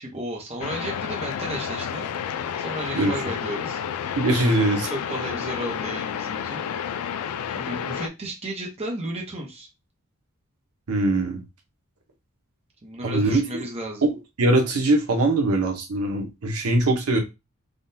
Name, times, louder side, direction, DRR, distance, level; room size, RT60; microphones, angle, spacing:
voice 1, 0.0-2.1 2.6-3.8 4.8-6.6 7.6-9.7 12.8-14.0, right 1 dB, 30° right, 0 dB, 0.7 m, -33 dB
sound 1, 0.6-8.1, left 8 dB, 85° left, 0.3 m, -30 dB
voice 2, 4.2-4.9 10.9-11.4 13.0-13.4 14.0-14.1 14.4-17.2, right 2 dB, 85° right, 3 dB, 0.8 m, -21 dB
3.6 x 2.2 x 2.6 m, 0.25 s
head